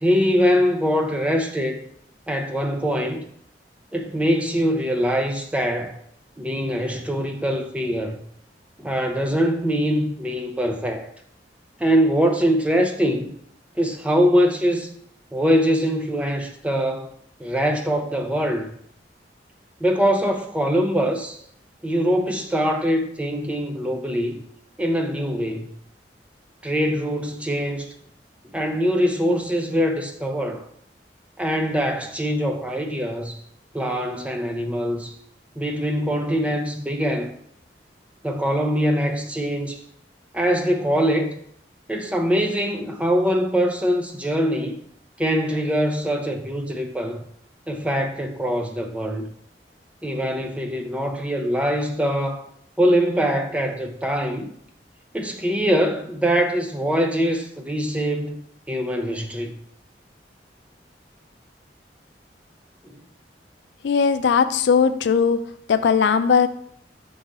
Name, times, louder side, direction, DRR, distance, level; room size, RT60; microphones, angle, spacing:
voice 1, 0.0-1.8 2.3-3.2 3.9-6.0 6.4-8.2 8.8-11.1 11.8-13.4 13.8-14.9 15.3-17.1 17.4-18.7 19.8-21.4 21.8-24.4 24.8-25.7 26.6-27.9 28.5-30.6 31.4-33.4 33.7-35.1 35.6-37.3 38.2-39.8 40.3-41.4 41.9-44.8 45.2-47.2 47.7-49.3 50.0-52.4 52.8-54.5 55.1-59.5, equal, 5° right, 0.5 m, -23 dB
voice 2, 63.8-65.4 65.7-66.5, left 6 dB, 85° left, 0.4 m, -18 dB
6.1 x 3.7 x 4.1 m
head